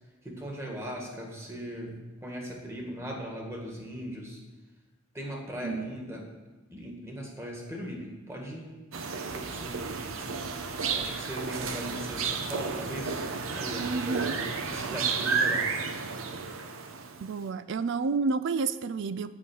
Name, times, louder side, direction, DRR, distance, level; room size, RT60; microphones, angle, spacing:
voice 1, 0.2-4.4 5.1-6.3 6.7-8.8 9.3-10.5 10.9-13.3 13.6-15.7, equal, 15° right, 0 dB, 1.8 m, -39 dB
sound 1, 8.9-17.3, right 5 dB, 75° right, 0.8 m, -32 dB
voice 2, 13.8-14.3 17.2-19.3, right 4 dB, 60° right, 14 dB, 0.4 m, -30 dB
8.7 x 5.5 x 8.0 m, 1.2 s
head